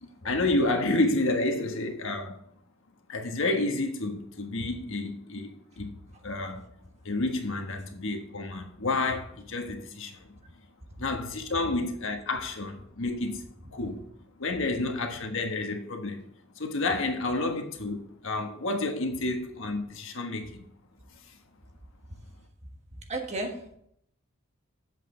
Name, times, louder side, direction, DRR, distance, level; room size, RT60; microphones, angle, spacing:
voice 1, 0.0-2.4 3.1-5.9 6.2-6.6 7.0-10.3 11.0-14.0 14.4-16.2 16.6-20.6 21.3-21.4, left 2 dB, 65° left, 1.3 m, -30 dB
voice 2, 23.1-23.8, right 2 dB, 35° right, 1.5 m, -33 dB
8.3 x 7.6 x 3.7 m
head